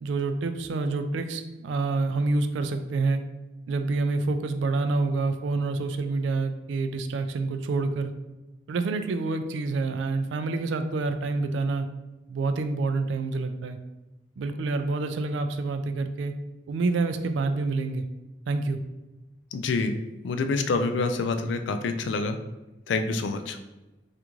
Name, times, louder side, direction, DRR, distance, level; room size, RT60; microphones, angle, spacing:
voice 1, 0.0-3.2 3.7-8.1 8.7-11.9 12.3-13.8 14.4-16.4 16.7-18.1 18.5-18.8, right 3 dB, 75° right, 8 dB, 0.3 m, -27 dB
voice 2, 19.5-19.9 20.2-22.4 22.9-23.6, left 3 dB, 70° left, 8 dB, 0.3 m, -27 dB
3.5 x 2.5 x 3.0 m, 1.1 s
head